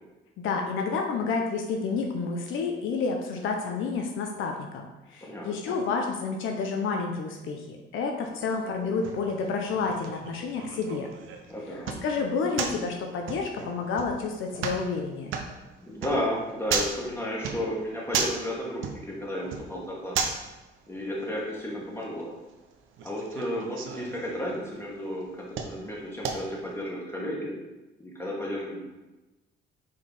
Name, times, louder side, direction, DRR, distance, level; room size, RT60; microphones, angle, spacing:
voice 1, 0.4-11.1 12.0-15.3, left 4 dB, 85° left, 2 dB, 0.9 m, -30 dB
voice 2, 5.2-5.8 11.5-12.0 15.8-20.3 20.9-22.3 23.0-27.5 28.0-28.8, left 1 dB, 10° left, -4 dB, 2.3 m, -33 dB
sound 1, 8.2-26.8, right 5 dB, 80° right, 0.9 m, -37 dB
5.2 x 4.8 x 5.4 m, 1.1 s
cardioid pair, 90°, 20 cm